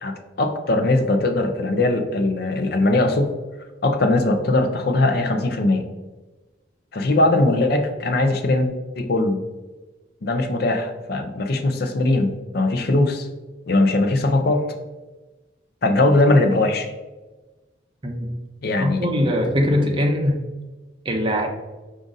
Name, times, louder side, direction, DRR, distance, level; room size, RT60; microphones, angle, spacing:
voice 1, 0.0-3.3 3.8-5.9 6.9-8.7 9.0-9.4 10.2-13.3 13.7-14.6 15.8-16.9 18.6-19.1, left 2 dB, 55° left, 6 dB, 0.5 m, -20 dB
voice 2, 18.8-20.4 21.0-21.5, equal, 25° right, 1 dB, 0.6 m, -21 dB
4.9 x 2.5 x 3.9 m, 1.2 s
head